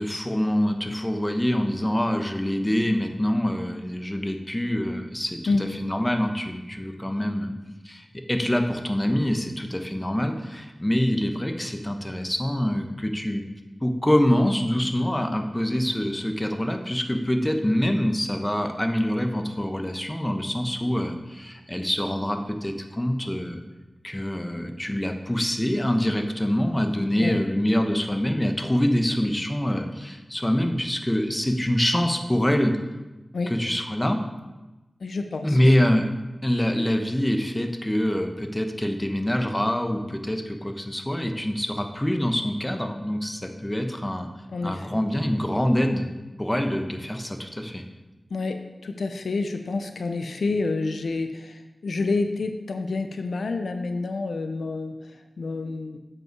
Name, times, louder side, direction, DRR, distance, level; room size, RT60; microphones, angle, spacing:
voice 1, 0.0-7.5 7.8-13.4 13.8-23.6 24.0-32.8 33.5-34.2 35.4-36.1 36.4-44.3 44.6-46.1 46.4-47.8, equal, 15° left, 5 dB, 0.9 m, -25 dB
voice 2, 35.0-35.6 44.5-45.0 48.3-48.6 48.8-56.0, left 3 dB, 90° left, 6 dB, 0.5 m, -28 dB
7.4 x 5.4 x 4.6 m, 1.1 s
cardioid pair, 40°, 0 cm